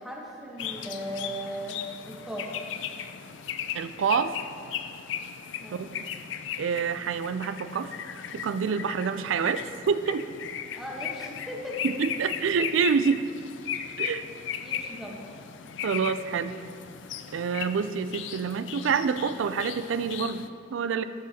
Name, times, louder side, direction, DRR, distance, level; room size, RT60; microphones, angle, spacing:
voice 1, 0.0-1.8 2.1-2.5 5.6-5.9 10.7-11.8 14.6-15.2, equal, ahead, -4 dB, 1.0 m, -37 dB
sound 1, 0.6-20.5, left 8 dB, 75° left, 0.4 m, -37 dB
voice 2, 3.7-4.3 5.7-6.0 6.6-7.9 8.3-10.3 11.8-13.3 14.0-14.3 15.8-16.6 17.3-21.0, right 6 dB, 90° right, 12 dB, 0.4 m, -27 dB
14.0 x 6.2 x 2.8 m, 2.4 s
head